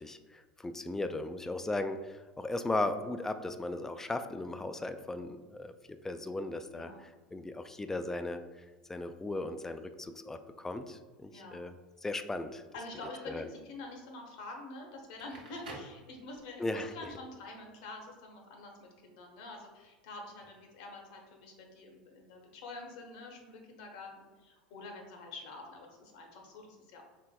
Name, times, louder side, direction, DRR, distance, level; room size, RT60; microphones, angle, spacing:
voice 1, 0.0-5.7 6.0-8.4 8.9-11.7 12.0-12.6 13.3-13.5 16.6-16.9, left 2 dB, 10° left, 9 dB, 0.3 m, -37 dB
voice 2, 11.3-11.6 12.7-27.0, left 2 dB, 65° left, 1 dB, 0.9 m, -47 dB
Crackle, 15.0-16.7, right 2 dB, 85° right, 0.8 m, -49 dB
4.4 x 3.3 x 2.2 m, 1.3 s
hypercardioid pair, 80°, 4 cm